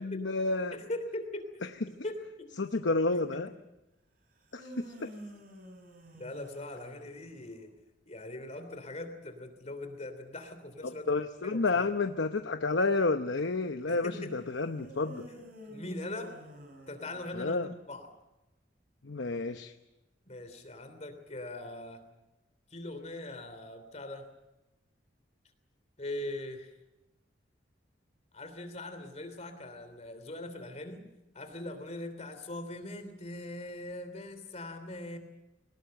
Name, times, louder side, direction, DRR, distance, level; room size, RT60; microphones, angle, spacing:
voice 1, 0.0-0.7 2.6-3.5 4.5-5.1 10.8-15.3 17.3-17.7 19.0-19.7, left 3 dB, 80° left, 7 dB, 0.9 m, -30 dB
voice 2, 0.7-1.5 2.0-2.5 3.1-3.4 6.1-7.7 8.0-11.1 11.4-11.9 13.8-14.3 15.3-15.4 15.7-16.3 16.9-18.1 20.3-22.0 22.7-24.3 26.0-26.7 28.3-31.0 31.3-35.2, left 1 dB, 35° left, 8 dB, 3.1 m, -41 dB
sound 1, 4.3-7.6 14.7-17.7, equal, 50° right, 5.3 m, -49 dB
23.5 x 19.0 x 7.8 m, 0.99 s
head